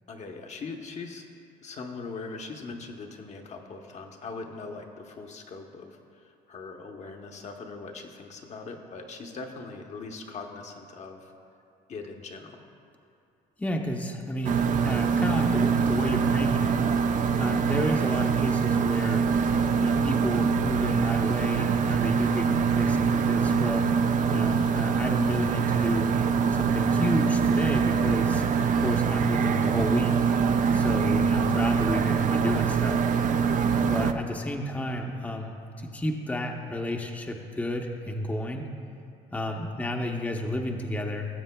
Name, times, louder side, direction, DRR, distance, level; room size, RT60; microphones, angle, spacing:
voice 1, 0.1-1.3 1.6-11.3 11.9-12.6, left 4 dB, 45° left, 3 dB, 0.8 m, -41 dB
voice 2, 13.6-16.8 17.4-19.2 19.8-23.9 24.3-26.1 26.5-30.2 30.7-33.0 33.8-38.7 39.3-41.3, left 1 dB, 10° left, 1 dB, 0.7 m, -31 dB
sound 1, 14.4-34.1, right 6 dB, 50° right, 0.4 m, -24 dB
18.0 x 7.2 x 2.2 m, 2.5 s
cardioid pair, 110°, 17 cm